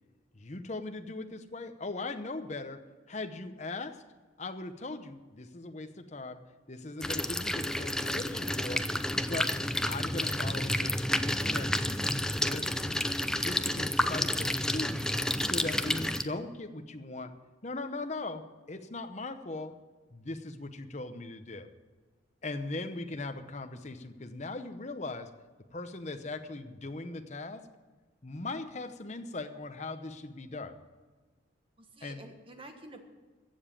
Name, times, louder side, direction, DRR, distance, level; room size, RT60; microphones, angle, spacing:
voice 1, 0.3-2.8 3.1-3.9 4.4-6.4 6.7-8.8 9.3-9.5 9.8-12.0 12.3-13.0 13.3-15.2 15.4-17.3 17.6-18.4 18.7-19.7 20.1-21.7 22.4-25.3 25.7-27.6 28.2-30.7 32.0-32.2, left 2 dB, 35° left, 7 dB, 0.8 m, -39 dB
sound 1, 7.0-16.2, left 1 dB, 5° left, 0.4 m, -30 dB
voice 2, 31.8-33.0, right 1 dB, 25° right, 5 dB, 1.4 m, -49 dB
15.0 x 7.1 x 8.5 m, 1.3 s
head